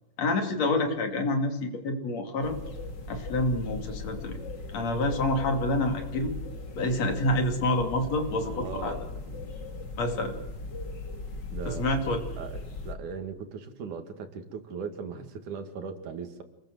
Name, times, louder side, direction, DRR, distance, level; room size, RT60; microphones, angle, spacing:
voice 1, 0.2-2.6 3.1-4.4 4.7-6.3 6.7-9.0 10.0-10.4 11.7-12.2, left 2 dB, 60° left, 5 dB, 3.8 m, -28 dB
sound 1, 2.4-12.9, left 3 dB, 40° left, 2.7 m, -38 dB
voice 2, 8.4-9.5 11.5-12.0 12.4-16.4, right 6 dB, 85° right, 7 dB, 3.5 m, -39 dB
27.0 x 20.0 x 7.8 m, 0.87 s
omnidirectional pair, 3.4 m